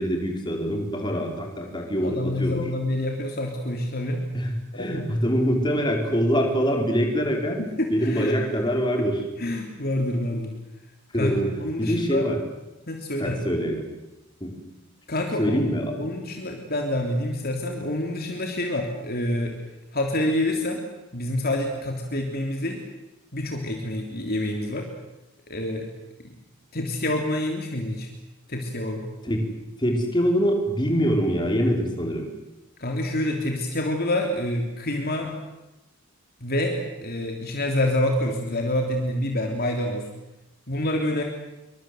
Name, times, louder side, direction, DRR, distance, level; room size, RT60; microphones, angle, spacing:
voice 1, 0.0-2.6 4.3-7.6 7.9-9.2 11.1-11.5 11.8-12.4 13.2-13.8 14.4-14.5 15.4-16.0 29.2-29.4 29.8-32.2, equal, 20° left, 2 dB, 4.9 m, -24 dB
voice 2, 2.0-4.2 4.7-5.0 7.6-8.4 9.0-9.1 9.4-10.5 11.2-11.3 11.6-12.3 12.9-13.4 15.1-15.7 16.0-19.6 19.9-20.8 21.1-22.8 23.3-24.9 25.5-25.9 26.2-26.3 26.7-28.1 28.5-29.1 32.8-35.3 36.4-40.0 40.7-41.2, left 1 dB, 45° left, 2 dB, 3.4 m, -27 dB
27.5 x 25.0 x 8.0 m, 0.96 s
head